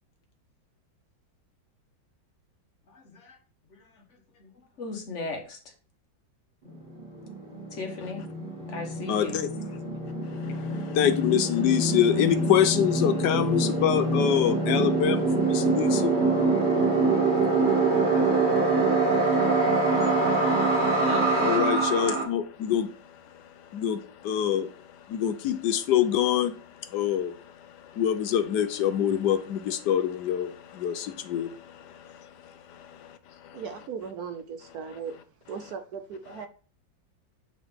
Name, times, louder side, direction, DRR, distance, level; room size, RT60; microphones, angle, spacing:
voice 1, 2.9-3.4 3.7-4.0 4.3-4.5 4.8-5.7 7.7-8.2 8.7-9.4 21.0-21.3 31.9-32.0 32.5-32.6 33.6-34.0, left 3 dB, 45° left, 1.2 m, -38 dB
sound 1, 6.7-6.8 7.0-22.2, right 3 dB, 30° right, 3.2 m, -25 dB
voice 2, 9.1-9.5 10.4-16.2 21.4-22.9 23.7-24.8 25.1-33.9 34.9-35.0 35.6-35.7 36.3-36.5, left 10 dB, 70° left, 1.1 m, -26 dB
voice 3, 33.5-35.1 35.5-36.5, right 6 dB, 70° right, 0.9 m, -37 dB
7.4 x 3.8 x 3.5 m
omnidirectional pair, 2.1 m